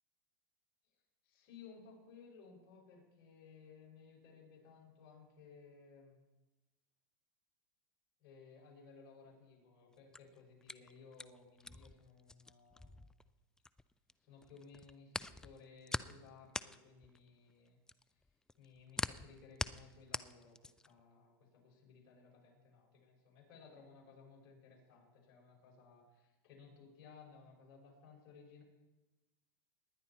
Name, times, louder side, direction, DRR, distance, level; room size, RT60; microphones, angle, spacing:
voice 1, 1.2-6.2 8.2-13.1 14.2-17.8 18.0-18.3 18.6-28.6, left 5 dB, 50° left, -1 dB, 5.8 m, -59 dB
sound 1, 9.9-14.1 14.4-21.0, left 2 dB, 5° left, 0.3 m, -43 dB
19.0 x 10.5 x 4.4 m, 1.1 s
supercardioid pair, 130°, 12 cm